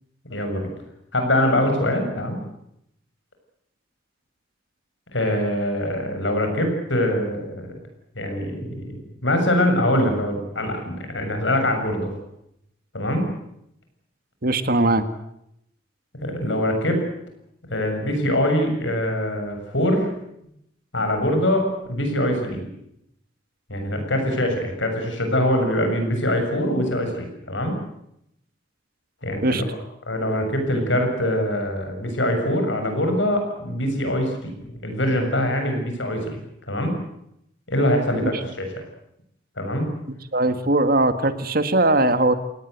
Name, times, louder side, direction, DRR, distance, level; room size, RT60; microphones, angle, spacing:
voice 1, 0.3-0.7 1.1-2.4 5.1-7.8 8.2-12.2 12.9-13.3 16.1-17.0 17.7-20.1 20.9-22.7 23.7-27.7 29.2-29.6 30.1-36.4 36.7-37.0 37.7-38.7 39.6-39.9, left 1 dB, 80° left, 5 dB, 7.0 m, -23 dB
voice 2, 14.4-15.1 29.4-29.6 38.2-38.3 40.3-42.3, right 2 dB, 50° right, 10 dB, 1.8 m, -20 dB
27.0 x 19.0 x 8.2 m, 0.77 s
head